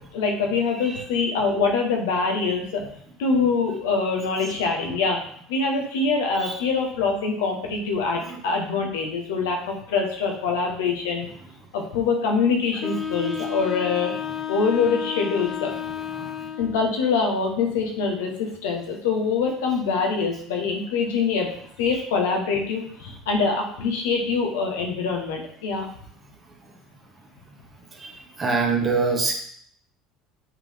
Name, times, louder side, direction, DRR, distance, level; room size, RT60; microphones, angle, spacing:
voice 1, 0.1-2.8 3.2-5.2 5.5-11.3 11.7-14.1 14.5-15.7 16.6-21.5 21.8-25.9, left 4 dB, 85° left, 1 dB, 1.3 m, -24 dB
Wind instrument woodwind instrument, 12.8-16.9, left 8 dB, 30° left, 0.9 m, -31 dB
voice 2, 16.1-16.5 27.9-29.3, right 4 dB, 30° right, 1 dB, 1.7 m, -25 dB
8.1 x 3.8 x 3.6 m, 0.62 s
supercardioid pair, 85°, 0 cm